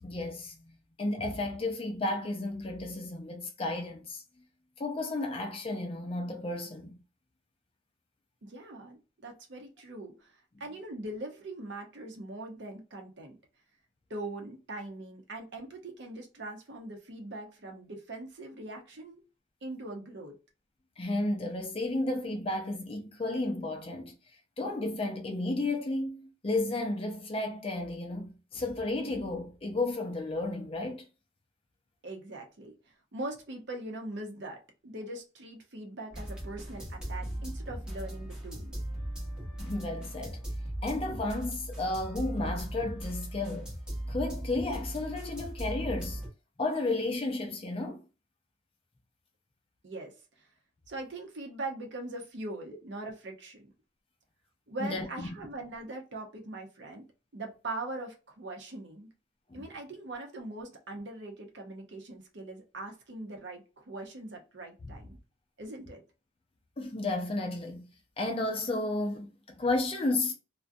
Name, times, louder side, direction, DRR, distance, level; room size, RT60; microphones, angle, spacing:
voice 1, 0.0-4.2 4.8-7.0 21.0-24.2 24.6-31.1 39.6-40.4 40.8-43.7 44.1-46.2 46.6-48.0 54.8-55.3 59.5-59.6 64.8-64.9 66.8-67.9 68.2-70.3, left 2 dB, 30° left, 0.4 m, -33 dB
voice 2, 8.4-13.4 14.1-19.2 19.6-20.4 32.0-32.8 33.1-38.8 49.8-50.5 50.9-53.7 54.7-57.0 57.3-59.1 59.5-65.2 65.6-66.0, right 2 dB, 60° right, 0.6 m, -41 dB
sound 1, 36.1-46.3, right 1 dB, 5° right, 0.7 m, -38 dB
2.4 x 2.1 x 2.5 m
head